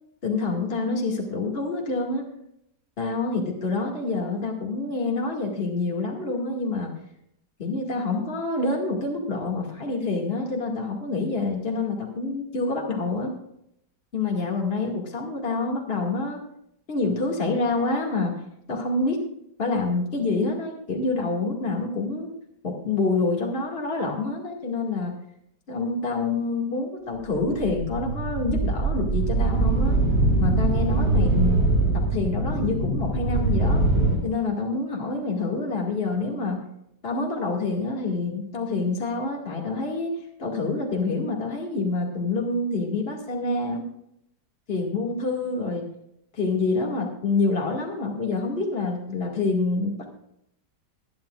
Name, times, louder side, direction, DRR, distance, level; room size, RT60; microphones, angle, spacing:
voice 1, 0.2-2.2 3.0-6.9 7.6-13.3 14.1-16.4 16.9-18.3 18.7-19.2 19.6-22.3 22.6-25.1 25.7-30.0 30.4-31.6 31.9-33.8 34.2-36.6 37.0-43.8 44.7-45.9 46.3-50.1, left 3 dB, 35° left, 0 dB, 2.2 m, -27 dB
sound 1, 27.3-34.1, right 2 dB, 55° left, 6.2 m, -23 dB
23.5 x 10.5 x 2.4 m, 0.77 s
omnidirectional pair, 1.9 m